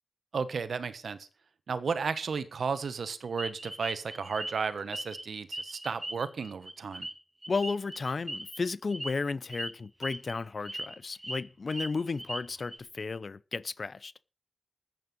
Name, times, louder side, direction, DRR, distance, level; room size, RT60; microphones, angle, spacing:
voice 1, 0.3-1.3 1.7-7.1, right 5 dB, 70° right, 1.3 m, -33 dB
sound 1, 3.4-5.2 5.5-8.6 8.9-9.1 9.5-9.7 10.0-10.3 10.7-11.4 11.7-12.8, right 1 dB, 15° right, 1.7 m, -39 dB
voice 2, 7.5-14.1, left 4 dB, 50° left, 0.6 m, -33 dB
14.0 x 9.1 x 5.4 m
wide cardioid pair, 95°, 0 cm